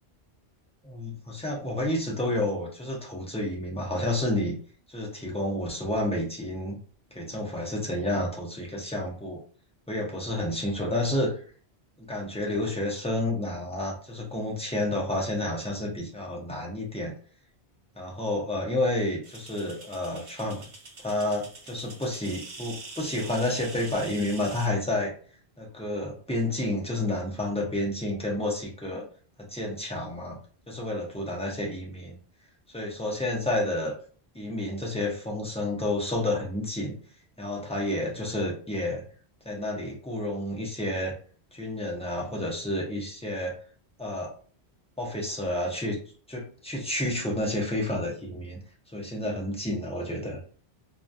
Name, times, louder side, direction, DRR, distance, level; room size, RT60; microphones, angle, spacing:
voice 1, 0.8-4.6 4.9-6.8 7.1-9.4 9.9-11.4 12.0-17.1 18.0-20.6 21.0-25.1 25.6-29.0 29.4-30.4 30.7-32.2 32.7-33.9 34.3-36.9 37.4-39.0 39.4-41.1 41.5-43.5 44.0-44.3 45.0-46.0 46.3-48.6 48.9-50.4, left 1 dB, 10° left, -2 dB, 0.4 m, -30 dB
sound 1, 19.2-24.7, right 3 dB, 80° right, 1.0 m, -44 dB
2.2 x 2.2 x 2.5 m, 0.43 s
omnidirectional pair, 1.1 m